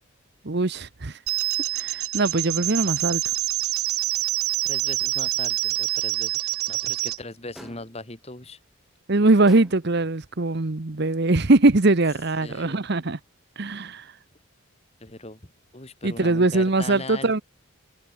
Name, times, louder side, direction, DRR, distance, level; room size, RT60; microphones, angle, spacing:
voice 1, 0.4-1.1 1.7-3.2 9.1-13.2 13.6-14.0 16.0-17.4, right 2 dB, 50° right, 1.0 m, -21 dB
sound 1, 1.3-7.2, right 17 dB, 80° right, 0.4 m, -26 dB
voice 2, 4.6-8.6 12.4-12.9 15.0-15.4 15.7-17.4, left 2 dB, 30° left, 2.6 m, -39 dB
sound 2, 7.5-8.1 9.5-10.1, equal, ahead, 2.0 m, -45 dB
head